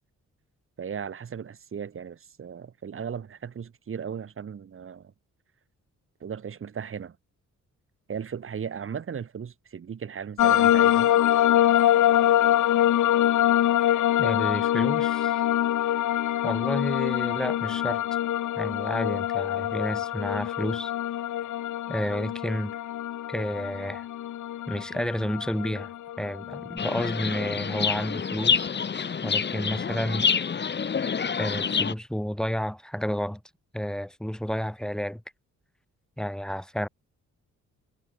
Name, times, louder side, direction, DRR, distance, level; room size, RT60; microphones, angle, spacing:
voice 1, 0.8-5.1 6.2-7.2 8.1-11.1, right 7 dB, 45° right, 3.2 m, -36 dB
sound 1, 10.4-28.1, left 12 dB, 85° left, 1.3 m, -24 dB
voice 2, 14.2-15.4 16.4-18.0 18.6-20.9 21.9-22.7 23.3-24.1 24.7-28.7 29.2-30.3 31.4-33.4 33.7-35.2 36.2-36.9, equal, ahead, 1.8 m, -31 dB
Chirp tweet, 26.8-31.9, left 6 dB, 35° left, 2.0 m, -27 dB
wide cardioid pair, 150°, 29 cm